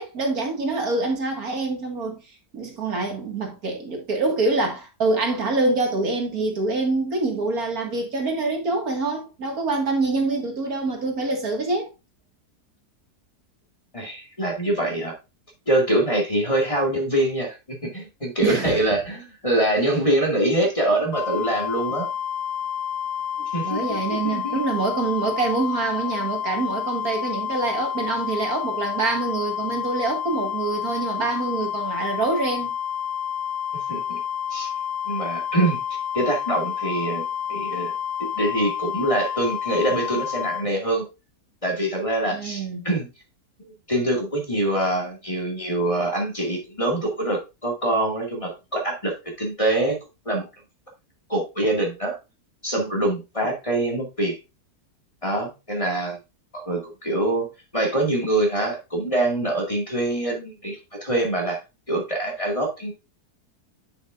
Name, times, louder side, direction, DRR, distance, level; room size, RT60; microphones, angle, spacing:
voice 1, 0.0-2.2 2.5-11.9 18.4-18.8 23.6-32.7 42.3-42.9, right 3 dB, 65° right, 2.4 m, -25 dB
voice 2, 13.9-15.1 15.7-22.1 23.5-24.6 33.9-34.2 34.5-34.7 35.0-37.9 38.2-41.0 41.6-43.1 43.9-50.0 50.3-50.4 51.3-52.2 52.6-54.4 55.2-56.2 56.5-57.5 57.7-61.6 61.9-62.9, right 1 dB, 20° left, 2.1 m, -24 dB
sound 1, 21.1-40.6, left 9 dB, 80° left, 2.0 m, -29 dB
10.5 x 5.9 x 2.5 m
omnidirectional pair, 1.7 m